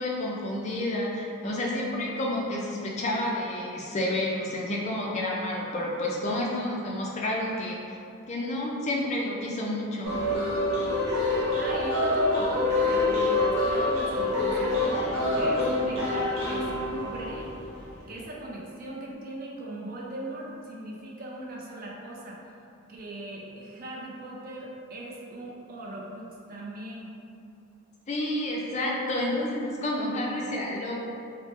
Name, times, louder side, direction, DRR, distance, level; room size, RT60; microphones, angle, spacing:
voice 1, 0.0-8.0 8.3-10.1 28.1-31.0, left 1 dB, 30° left, -3 dB, 0.4 m, -30 dB
sound 1, 10.0-17.9, left 2 dB, 65° right, 0.7 m, -26 dB
voice 2, 11.5-17.6 18.1-22.4 22.9-27.1, right 1 dB, 40° right, -3 dB, 0.4 m, -39 dB
3.0 x 2.0 x 3.1 m, 2.5 s
head